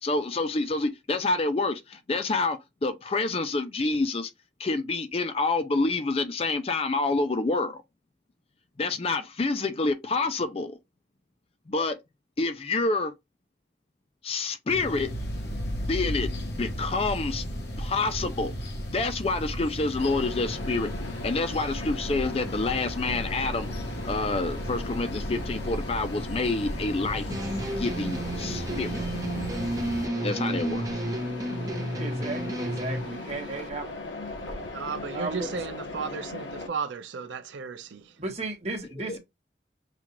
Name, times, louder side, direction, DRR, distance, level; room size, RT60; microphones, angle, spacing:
voice 1, 0.0-4.3 4.6-7.8 8.8-10.8 11.7-12.0 12.4-13.1 14.2-15.1 15.8-17.4 17.8-18.5 18.9-20.9 21.2-23.7 24.0-27.3 27.8-29.0 29.9-30.8 39.0-39.2, left 3 dB, 30° left, 0.4 m, -28 dB
sound 1, 14.7-30.1, equal, 60° left, 0.9 m, -35 dB
Mechanisms, 20.0-36.7, left 2 dB, 85° left, 1.3 m, -39 dB
sound 2, 27.3-33.0, right 1 dB, 20° right, 0.7 m, -31 dB
voice 2, 32.0-33.8 35.1-35.5 38.2-39.2, right 2 dB, 35° right, 1.1 m, -34 dB
voice 3, 34.7-38.2, right 5 dB, 75° right, 0.5 m, -34 dB
5.8 x 2.4 x 2.9 m
head